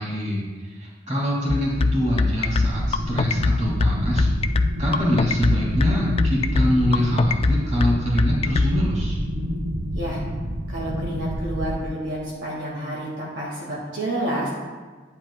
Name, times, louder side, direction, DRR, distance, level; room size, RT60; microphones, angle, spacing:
voice 1, 0.0-4.3 4.8-9.2, equal, 40° right, -4 dB, 2.7 m, -24 dB
sound 1, 1.5-8.7, left 3 dB, 30° left, 0.3 m, -20 dB
sound 2, 2.6-11.7, equal, 85° right, 1.6 m, -29 dB
voice 2, 10.7-14.5, right 1 dB, 70° right, -4 dB, 2.1 m, -29 dB
10.5 x 10.0 x 2.4 m, 1.4 s
head